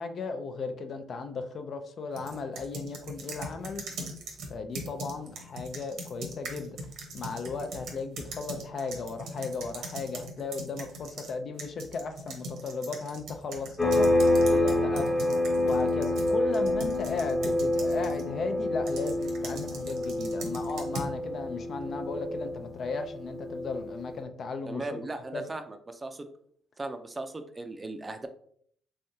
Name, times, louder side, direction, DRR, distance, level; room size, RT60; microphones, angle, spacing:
voice 1, 0.0-3.8 4.5-6.8 7.1-14.1 14.4-15.2 15.6-25.0 25.3-25.5, left 4 dB, 55° left, 0.5 m, -36 dB
sound 1, 2.2-11.3 11.6-18.3 18.9-21.1, right 1 dB, 80° right, 0.9 m, -41 dB
sound 2, 13.8-24.1, left 1 dB, 20° left, 0.9 m, -27 dB
voice 2, 24.7-26.3 26.8-28.3, right 2 dB, 25° right, 0.4 m, -37 dB
3.5 x 3.3 x 2.7 m
cardioid pair, 90°, 0 cm